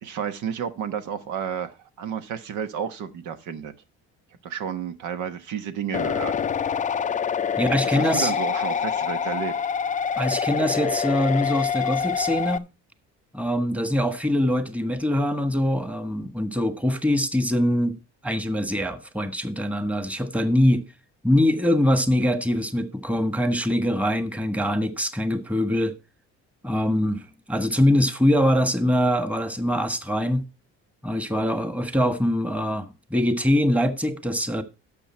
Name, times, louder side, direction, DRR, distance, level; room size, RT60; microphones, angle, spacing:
voice 1, 0.0-3.7 4.4-6.3 7.8-9.5, right 8 dB, 80° right, 1.2 m, -31 dB
sound 1, 5.9-12.6, left 7 dB, 25° left, 0.4 m, -26 dB
voice 2, 7.6-8.3 10.2-12.6 13.3-17.9 18.2-20.8 21.2-26.0 26.6-30.5 31.0-34.6, left 1 dB, 5° right, 1.4 m, -23 dB
11.5 x 7.1 x 4.4 m
cardioid pair, 90°, 30 cm